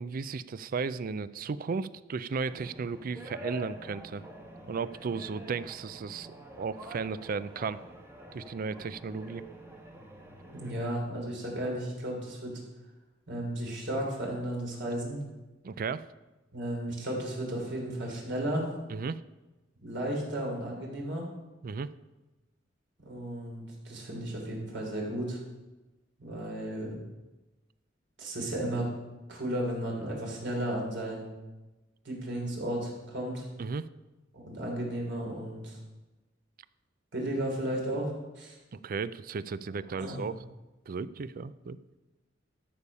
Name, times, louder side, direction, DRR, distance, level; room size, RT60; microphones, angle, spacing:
voice 1, 0.0-4.2 4.7-6.3 6.6-7.8 8.3-9.4 15.6-16.1 18.9-19.2 21.6-21.9 33.6-33.9 38.7-40.4 40.9-41.8, right 5 dB, 50° right, 16 dB, 0.4 m, -35 dB
sound 1, 2.5-10.9, right 1 dB, 15° right, 1.3 m, -47 dB
voice 2, 10.5-12.6 13.3-15.2 16.5-18.7 19.8-21.2 23.0-25.4 26.2-27.0 28.2-28.8 29.3-31.3 32.0-33.4 34.3-35.8 37.1-38.6 40.0-40.2, right 1 dB, 65° right, -1 dB, 3.3 m, -34 dB
13.0 x 6.9 x 5.5 m, 1.1 s
head